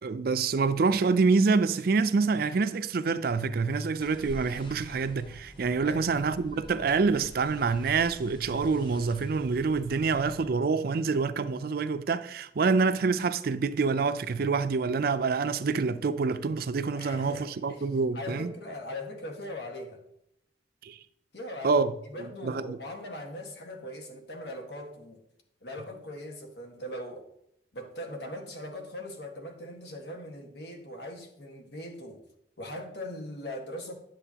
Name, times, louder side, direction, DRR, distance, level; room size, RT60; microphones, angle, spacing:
voice 1, 0.0-18.5 20.8-21.0 21.6-21.9 22.2-22.8, right 4 dB, 55° right, 0.4 m, -26 dB
sound 1, 4.0-10.5, equal, 25° left, 1.0 m, -47 dB
voice 2, 16.9-17.8 18.1-20.0 21.3-21.8 22.1-25.2 25.6-27.2 27.7-32.2 32.6-34.0, left 1 dB, 70° left, 1.6 m, -40 dB
10.0 x 7.6 x 2.9 m
head